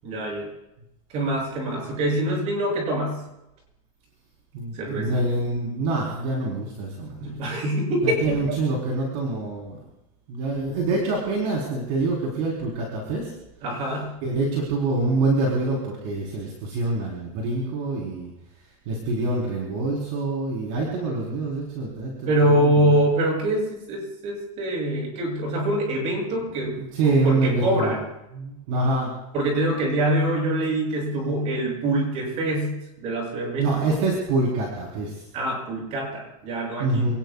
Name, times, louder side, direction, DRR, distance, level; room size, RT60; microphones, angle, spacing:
voice 1, 0.0-0.5 1.1-3.2 4.7-5.2 7.2-8.2 13.6-14.2 22.3-26.8 27.0-28.0 29.3-34.0 35.3-37.2, right 1 dB, 35° right, 0 dB, 7.6 m, -24 dB
voice 2, 4.5-7.2 8.0-9.8 10.3-13.3 14.2-18.3 18.9-22.9 26.7-27.9 28.3-29.1 31.1-31.3 33.6-35.3 36.8-37.1, right 2 dB, 50° right, -3 dB, 4.2 m, -26 dB
28.0 x 19.0 x 2.4 m, 0.89 s
supercardioid pair, 165°, 18 cm